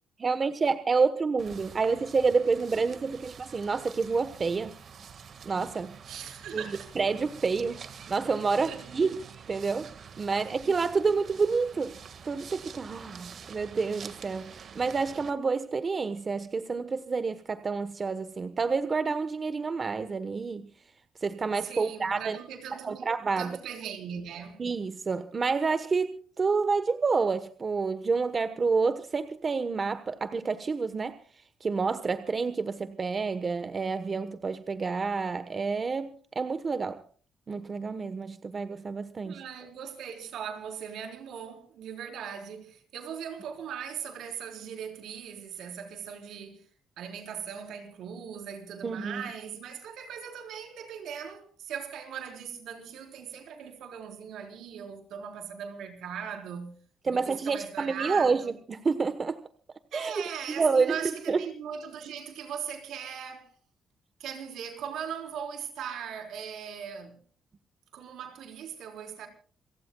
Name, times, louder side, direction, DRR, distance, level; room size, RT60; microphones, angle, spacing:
voice 1, 0.2-4.7 5.4-5.9 6.5-6.6 6.9-9.2 9.5-12.0 12.2-20.7 21.2-22.4 22.8-23.6 24.6-31.2 31.6-37.0 37.5-39.4 48.8-49.2 57.0-59.4 59.9-60.2 60.5-61.4, right 4 dB, 35° right, 1.1 m, -28 dB
sound 1, 1.4-15.3, right 7 dB, 55° right, 1.7 m, -47 dB
voice 2, 6.1-6.9 8.6-8.8 10.5-10.6 21.6-23.1 23.4-24.6 39.2-46.7 47.0-56.8 57.1-58.5 59.9-63.5 64.2-67.2 67.9-69.3, right 8 dB, 80° right, 4.0 m, -39 dB
28.5 x 17.5 x 2.3 m
cardioid pair, 90°, 0 cm